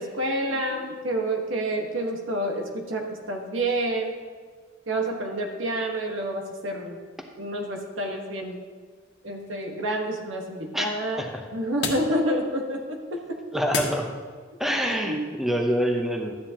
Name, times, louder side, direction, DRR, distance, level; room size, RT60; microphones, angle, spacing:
voice 1, 0.0-4.2 4.9-7.0 7.4-8.6 9.2-11.2 11.5-13.4 15.1-15.3, right 1 dB, 90° right, 1 dB, 1.5 m, -28 dB
sound 1, 8.5-14.6, left 4 dB, 60° left, 1.3 m, -38 dB
voice 2, 10.7-11.4 13.5-14.1 14.6-16.3, equal, ahead, 2 dB, 0.9 m, -26 dB
12.5 x 9.3 x 2.9 m, 1.5 s
head